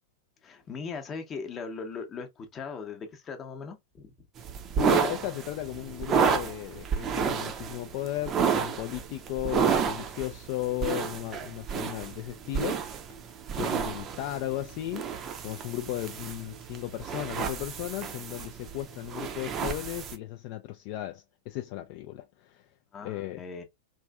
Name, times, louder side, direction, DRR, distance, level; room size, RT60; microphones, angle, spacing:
voice 1, 0.4-4.1 22.9-23.6, left 5 dB, 25° left, 0.8 m, -39 dB
sound 1, 4.4-20.1, right 7 dB, 30° right, 0.5 m, -31 dB
voice 2, 4.8-12.8 13.1-13.2 13.6-15.1 15.4-22.7 23.0-23.4, left 15 dB, 45° left, 0.3 m, -35 dB
3.1 x 2.5 x 2.3 m
figure-of-eight pair, 90°, 0 cm